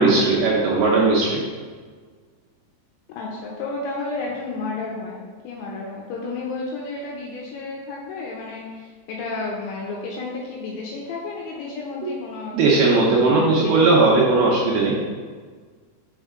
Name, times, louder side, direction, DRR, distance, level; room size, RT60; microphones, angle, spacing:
voice 1, 0.0-1.4 12.0-12.1 12.5-15.0, right 3 dB, 80° right, -4 dB, 2.3 m, -18 dB
voice 2, 3.2-12.6 12.9-14.0, left 3 dB, 80° left, -2 dB, 2.8 m, -32 dB
6.0 x 5.5 x 3.6 m, 1.5 s
omnidirectional pair, 5.5 m